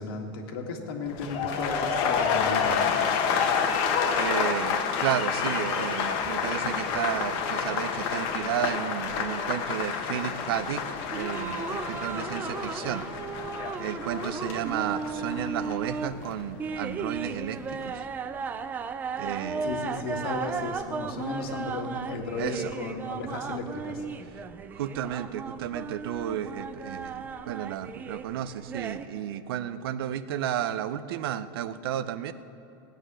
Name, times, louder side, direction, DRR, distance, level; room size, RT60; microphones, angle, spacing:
voice 1, 0.0-3.0 19.6-24.0, left 3 dB, 85° left, 2 dB, 2.0 m, -34 dB
sound 1, 1.1-17.1 17.4-17.9, left 6 dB, 45° left, 1.2 m, -29 dB
voice 2, 4.1-13.1 13.8-18.1 19.1-19.8 22.3-22.7 24.4-24.5 24.7-32.3, right 10 dB, 85° right, 13 dB, 0.7 m, -32 dB
sound 2, 11.1-29.1, right 5 dB, 15° right, 0.4 m, -36 dB
17.5 x 9.1 x 6.3 m, 2.8 s
supercardioid pair, 165°, 12 cm